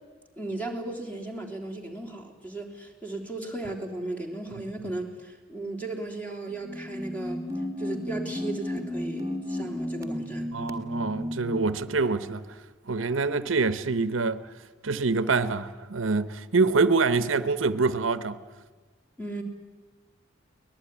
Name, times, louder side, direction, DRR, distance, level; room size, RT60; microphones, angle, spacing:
voice 1, 0.4-7.5 7.8-10.5 19.2-19.4, right 2 dB, 10° left, 3.3 m, -36 dB
sound 1, 6.5-11.8, left 1 dB, 15° right, 1.8 m, -33 dB
voice 2, 10.5-12.6 12.9-14.5 14.8-18.4, right 4 dB, 80° right, 0.9 m, -25 dB
23.5 x 19.5 x 9.9 m
head